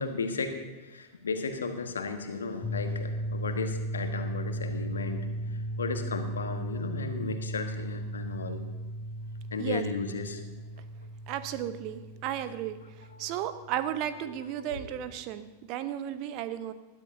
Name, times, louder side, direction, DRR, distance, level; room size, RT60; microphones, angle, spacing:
voice 1, 0.0-8.7 9.5-10.4 13.1-13.4 14.6-14.9, left 4 dB, 70° left, 7 dB, 1.4 m, -35 dB
sound 1, 2.6-14.5, right 1 dB, 30° left, 1.1 m, -36 dB
voice 2, 11.3-16.7, right 11 dB, 40° right, 12 dB, 0.8 m, -34 dB
20.5 x 13.0 x 2.7 m, 1.2 s
figure-of-eight pair, 90°, 0 cm